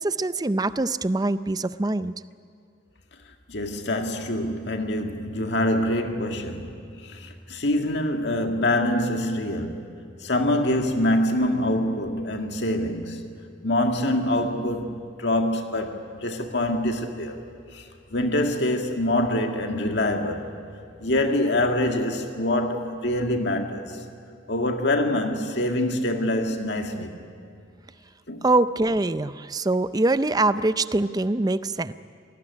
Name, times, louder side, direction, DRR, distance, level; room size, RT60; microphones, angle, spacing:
voice 1, 0.0-2.1 28.4-31.9, right 2 dB, 20° right, 0.5 m, -23 dB
voice 2, 3.5-9.9 10.2-13.2 13.6-17.4 17.7-20.5 21.0-24.0 24.5-27.2 28.3-28.4, left 1 dB, 60° left, 2.1 m, -25 dB
27.0 x 19.0 x 9.9 m
head